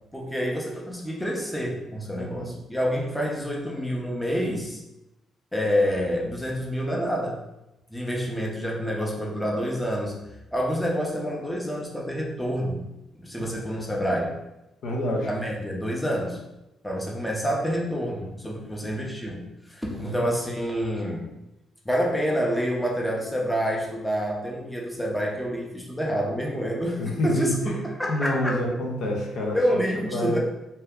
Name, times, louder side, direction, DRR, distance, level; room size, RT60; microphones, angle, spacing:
voice 1, 0.1-4.8 5.5-7.4 7.9-10.2 10.5-12.8 13.2-14.4 15.3-16.4 16.8-19.4 19.7-21.3 21.9-28.6 29.5-30.4, equal, 5° left, -2 dB, 0.6 m, -28 dB
voice 2, 2.1-2.6 13.4-13.5 14.8-15.3 19.9-20.2 27.0-27.8 28.1-29.8 30.1-30.4, left 1 dB, 75° left, -1 dB, 0.7 m, -28 dB
2.8 x 2.2 x 3.5 m, 0.94 s
cardioid pair, 90°, 0 cm